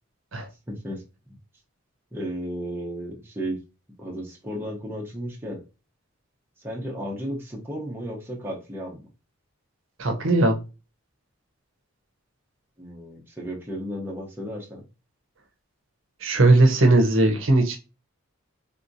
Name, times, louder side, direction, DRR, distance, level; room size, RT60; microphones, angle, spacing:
voice 1, 0.7-1.0 2.1-3.6 4.0-5.6 6.6-9.1 12.8-14.9, equal, 10° right, 0.7 m, -34 dB
voice 2, 10.0-10.6 16.2-17.8, right 2 dB, 65° right, 0.7 m, -18 dB
3.5 x 2.8 x 2.6 m
head